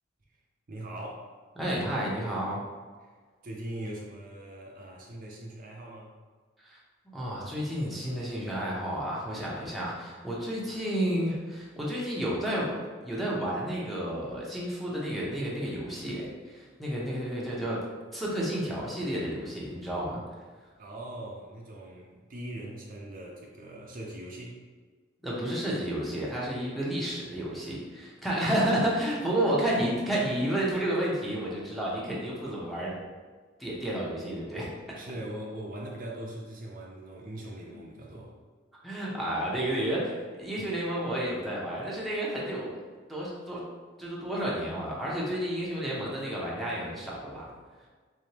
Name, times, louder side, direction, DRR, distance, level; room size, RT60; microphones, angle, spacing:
voice 1, 0.7-1.3 3.0-3.1 3.4-6.1 20.8-24.6 35.0-38.3 40.6-40.7 45.3-45.4, right 1 dB, 45° right, -2 dB, 0.5 m, -41 dB
voice 2, 1.6-2.6 6.6-6.8 7.1-12.7 13.0-17.8 18.1-20.2 25.2-33.0 33.6-34.7 37.7-37.8 38.8-42.7 43.1-43.6 44.0-47.5, right 1 dB, ahead, -6 dB, 0.8 m, -31 dB
3.7 x 3.4 x 2.9 m, 1.5 s
head